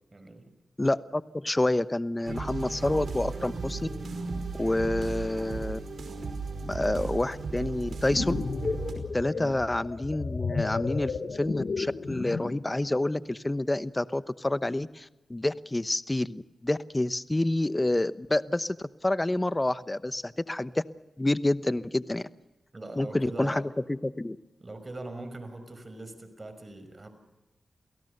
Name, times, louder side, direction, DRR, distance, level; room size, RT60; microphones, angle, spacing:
voice 1, 0.1-0.5 9.3-9.7 22.7-23.7 24.6-27.1, right 2 dB, 40° right, 9 dB, 5.7 m, -41 dB
voice 2, 0.8-3.9 4.6-5.8 6.6-8.3 9.1-20.8 21.2-22.2 23.0-24.4, left 1 dB, 20° left, 15 dB, 1.0 m, -28 dB
sound 1, 2.3-8.9, right 4 dB, 75° right, 5.0 m, -35 dB
sound 2, 7.9-12.7, left 4 dB, 65° left, 1.4 m, -33 dB
28.5 x 17.5 x 6.8 m, 1.0 s
cardioid pair, 50°, 0 cm